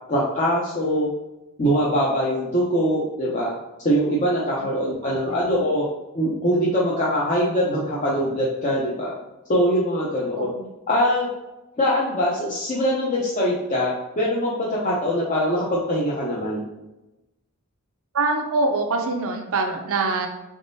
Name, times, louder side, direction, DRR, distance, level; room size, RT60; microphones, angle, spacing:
voice 1, 0.1-1.1 1.6-3.5 3.8-5.8 6.1-9.1 9.5-10.5 10.9-11.3 11.8-16.6, equal, 35° left, -6 dB, 0.7 m, -22 dB
voice 2, 4.6-5.5 10.4-10.7 18.1-20.3, right 3 dB, 65° right, 3 dB, 0.5 m, -25 dB
4.0 x 3.6 x 2.6 m, 0.99 s
head